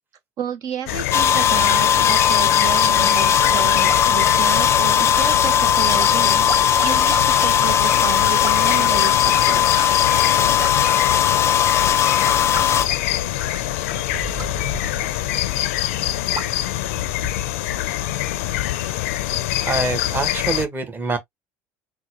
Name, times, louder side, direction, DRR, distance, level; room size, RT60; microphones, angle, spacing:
voice 1, 0.4-6.5 6.8-10.0, right 8 dB, 55° right, 0.8 m, -31 dB
sound 1, 0.9-20.7, left 14 dB, 90° left, 0.5 m, -25 dB
sound 2, 1.1-12.8, left 9 dB, 40° left, 0.5 m, -18 dB
sound 3, 3.2-17.7, right 4 dB, 40° right, 2.2 m, -38 dB
voice 2, 19.6-21.2, right 3 dB, 25° right, 1.3 m, -25 dB
4.0 x 2.2 x 2.9 m
supercardioid pair, 95°, 7 cm